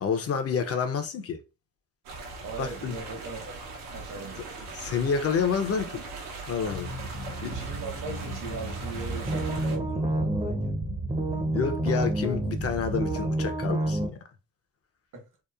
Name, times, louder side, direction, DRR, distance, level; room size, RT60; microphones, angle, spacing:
voice 1, 0.0-1.4 2.6-2.9 4.7-6.0 6.5-6.9 7.4-7.6 11.5-14.2, left 6 dB, 45° left, 0.5 m, -28 dB
sound 1, 2.1-9.8, right 3 dB, 90° right, 0.8 m, -40 dB
voice 2, 2.4-4.5 7.0-7.2 7.5-10.8 15.1-15.3, right 4 dB, 65° right, 1.0 m, -40 dB
sound 2, 6.6-13.5, right 2 dB, 80° left, 0.9 m, -37 dB
sound 3, 9.0-14.1, right 1 dB, 15° right, 0.5 m, -29 dB
2.9 x 2.0 x 2.3 m
cardioid pair, 90°, 34 cm